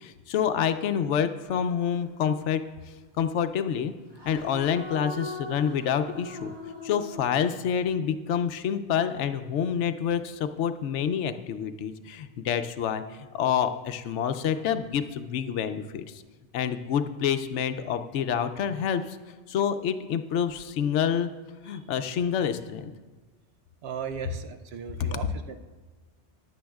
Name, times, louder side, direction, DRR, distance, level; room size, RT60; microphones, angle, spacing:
voice 1, 0.0-2.6 3.1-3.9 4.2-6.5 6.8-16.2 16.5-19.2 19.5-21.3 21.7-22.9 25.1-25.2, left 8 dB, 80° left, 10 dB, 0.9 m, -27 dB
sound 1, 2.0-2.7 4.1-7.3, left 2 dB, 20° right, 1.5 m, -40 dB
voice 2, 23.8-25.6, right 7 dB, 65° right, 7 dB, 0.8 m, -37 dB
15.0 x 10.5 x 2.3 m, 1.3 s
omnidirectional pair, 1.2 m